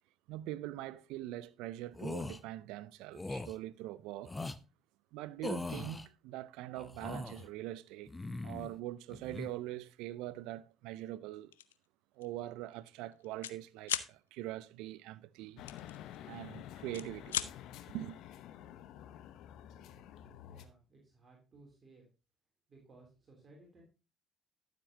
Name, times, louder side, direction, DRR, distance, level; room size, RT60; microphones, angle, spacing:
voice 1, 0.3-4.3 5.1-8.2 8.4-11.5 12.2-15.6 16.3-17.4 17.9-18.2, right 15 dB, 70° right, 0.5 m, -43 dB
sound 1, 1.9-2.4 3.1-3.5 4.2-4.6 5.4-6.1 6.8-7.5 8.1-8.7 9.1-9.5, left 2 dB, 20° left, 0.7 m, -40 dB
sound 2, 11.5-11.8 12.2-12.4 12.7-13.6 13.8-14.1 15.7-16.5 16.8-17.5, left 11 dB, 90° left, 0.4 m, -37 dB
sound 3, 15.6-20.7, left 11 dB, 65° left, 0.8 m, -50 dB
voice 2, 20.4-22.1 22.7-23.8, right 3 dB, 40° right, 3.2 m, -60 dB
12.0 x 7.4 x 2.9 m
hypercardioid pair, 55°, 0 cm